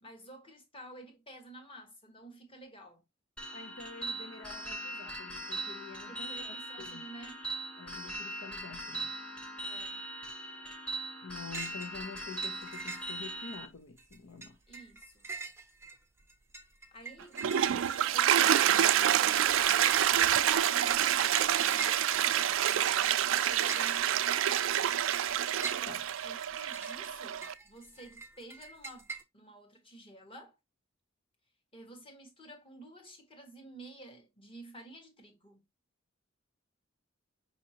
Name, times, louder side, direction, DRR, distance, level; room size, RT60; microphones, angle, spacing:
voice 1, 0.0-3.0 6.1-7.4 9.6-10.1 14.7-15.2 16.9-22.1 22.8-25.0 26.2-30.6 31.7-35.6, right 1 dB, 30° left, 1.3 m, -51 dB
sound 1, 3.4-13.7, right 2 dB, 5° left, 0.9 m, -40 dB
voice 2, 3.5-7.0 7.8-9.2 11.2-14.6 25.8-26.1, left 5 dB, 85° left, 0.6 m, -47 dB
sound 2, 11.5-11.9 12.2-13.6 14.0-29.2, right 4 dB, 15° right, 0.5 m, -45 dB
Toilet flush, 17.2-27.5, right 10 dB, 85° right, 0.4 m, -27 dB
5.5 x 2.8 x 2.7 m
head